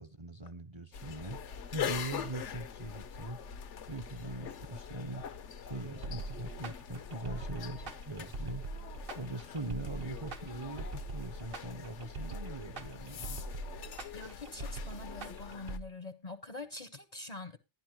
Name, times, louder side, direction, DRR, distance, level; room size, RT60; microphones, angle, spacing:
voice 1, 0.0-1.4 1.7-3.4 3.9-5.2 5.6-8.6 9.2-13.4, right 2 dB, 30° right, 0.7 m, -41 dB
sound 1, 0.9-15.8, left 7 dB, 75° left, 1.1 m, -43 dB
sound 2, 6.0-15.8, right 2 dB, 55° right, 1.1 m, -42 dB
voice 2, 14.1-17.6, left 2 dB, 40° left, 0.8 m, -45 dB
12.0 x 11.0 x 3.0 m
omnidirectional pair, 1.2 m